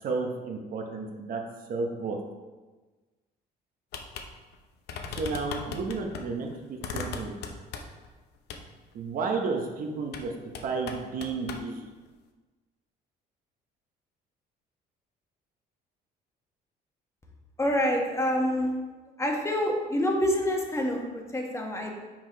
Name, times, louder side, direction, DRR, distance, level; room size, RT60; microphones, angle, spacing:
voice 1, 0.0-1.4 1.7-2.2 5.0-7.4 8.9-10.3 10.6-11.9, right 4 dB, 55° right, 2 dB, 0.9 m, -32 dB
sound 1, 3.9-4.3 4.5-4.6 4.9-6.2 6.8-8.1 8.5-8.7 10.1-10.3 10.5-11.6, left 5 dB, 75° left, 0.7 m, -37 dB
voice 2, 17.6-18.7 19.2-21.9, equal, 15° left, 1 dB, 1.2 m, -27 dB
5.9 x 4.7 x 4.5 m, 1.3 s
cardioid pair, 110°, 17 cm